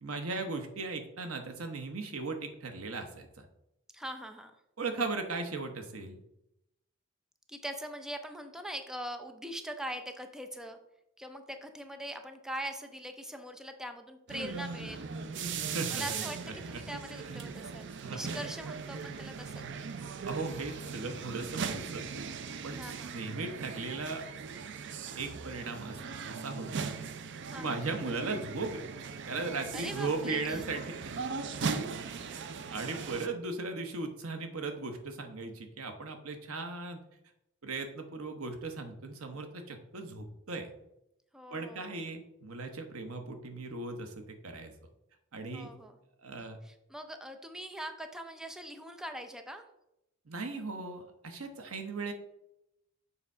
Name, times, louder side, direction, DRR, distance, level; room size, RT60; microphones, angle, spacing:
voice 1, 0.0-3.5 4.8-6.2 15.6-16.0 16.7-16.8 18.0-18.4 20.2-22.1 22.6-24.2 25.1-26.0 26.3-26.9 27.6-28.8 29.3-31.2 31.6-31.7 32.2-37.0 37.6-40.7 41.5-44.7 45.3-45.7 46.2-46.6 50.3-52.1, right 3 dB, 90° right, 5 dB, 1.0 m, -37 dB
voice 2, 3.9-4.5 7.5-10.8 11.2-15.1 15.9-16.4 16.7-19.5 22.8-23.2 27.5-27.8 29.7-30.6 41.3-42.0 45.5-46.0 46.6-49.6, equal, 5° right, 6 dB, 0.5 m, -42 dB
sound 1, 14.3-33.3, right 5 dB, 60° right, 0.5 m, -39 dB
6.9 x 3.6 x 5.4 m, 0.85 s
head